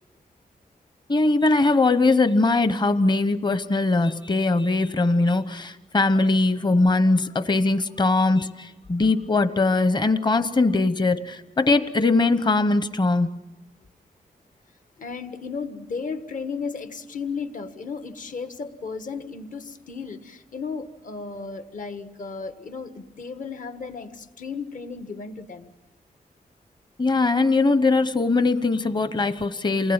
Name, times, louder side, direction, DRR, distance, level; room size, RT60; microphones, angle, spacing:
voice 1, 1.1-13.3 27.0-29.9, left 3 dB, 30° left, 1.0 m, -21 dB
voice 2, 15.0-25.7, left 5 dB, 60° left, 1.5 m, -34 dB
29.0 x 20.0 x 8.9 m
wide cardioid pair, 140°, 15 cm